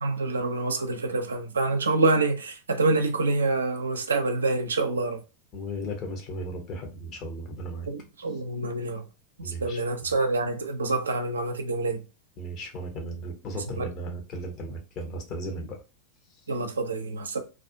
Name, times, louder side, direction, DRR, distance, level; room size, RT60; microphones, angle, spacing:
voice 1, 0.0-5.2 7.9-9.0 9.4-12.0 13.7-13.9 16.5-17.4, right 3 dB, 70° right, 0.4 m, -26 dB
voice 2, 5.5-7.9 9.4-10.1 12.4-15.8, right 1 dB, 35° left, 0.7 m, -36 dB
2.3 x 2.2 x 2.6 m
figure-of-eight pair, 90°, 0 cm